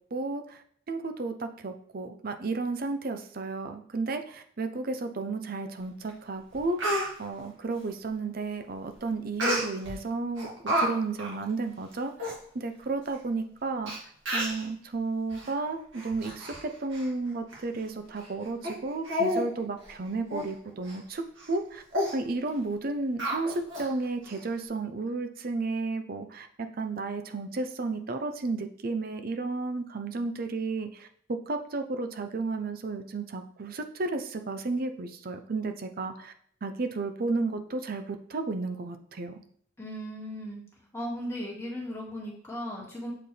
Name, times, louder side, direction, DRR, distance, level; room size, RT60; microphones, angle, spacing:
voice 1, 0.1-0.6 0.9-13.9 14.3-21.2 21.5-21.8 22.1-36.3 36.6-39.4, right 3 dB, 50° right, 7 dB, 0.6 m, -33 dB
Speech, 6.1-6.2 6.5-7.1 9.4-10.0 10.4-10.9 11.2-11.4 11.9-12.0 12.2-12.4 13.1-13.2 13.9-14.0 14.3-14.6 15.3-15.5 15.9-16.6 16.9-17.1 17.5-17.6 18.2-18.3 18.6-18.8 19.1-19.5 19.8-19.9 20.3-20.5 20.9-21.0 21.4-21.6 21.9-22.1 23.2-23.9 24.2-24.3, equal, 70° right, 2.0 m, -30 dB
voice 2, 39.8-40.6 40.9-43.1, equal, 15° left, -4 dB, 1.9 m, -36 dB
7.5 x 4.5 x 3.3 m, 0.62 s
head